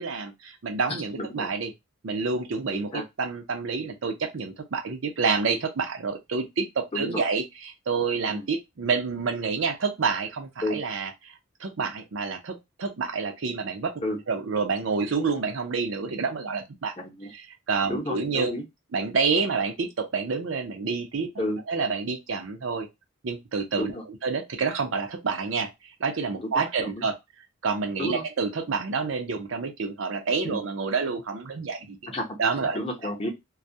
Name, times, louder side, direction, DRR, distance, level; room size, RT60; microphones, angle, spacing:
voice 1, 0.0-1.7 2.0-11.1 11.6-14.0 14.3-16.9 17.3-18.5 18.9-21.3 21.7-22.9 23.2-23.9 24.2-25.7 26.0-27.2 27.6-32.0 32.4-32.8, right 4 dB, 65° right, 0.6 m, -28 dB
voice 2, 1.2-1.5 2.7-3.0 6.9-7.2 8.3-8.5 10.6-10.8 14.0-14.2 17.0-17.3 17.9-18.6 21.4-21.6 23.7-24.0 26.4-26.5 26.8-26.9 28.0-28.2 30.4-30.6 32.1-32.2 32.7-33.3, left 1 dB, 30° left, 0.7 m, -31 dB
2.3 x 2.1 x 2.6 m
head